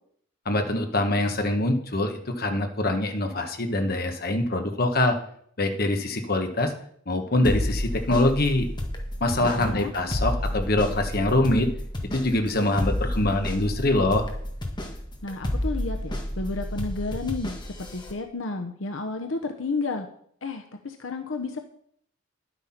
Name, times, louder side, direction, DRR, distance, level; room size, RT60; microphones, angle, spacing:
voice 1, 0.4-5.2 5.6-6.7 7.1-8.7 9.2-11.7 12.0-14.3, left 1 dB, 50° left, 5 dB, 1.5 m, -24 dB
sound 1, 7.4-18.1, left 1 dB, 20° left, 1.7 m, -31 dB
voice 2, 9.4-9.9 15.2-20.1 20.4-21.6, left 3 dB, 75° left, 5 dB, 0.9 m, -32 dB
10.5 x 8.2 x 5.9 m, 0.65 s
head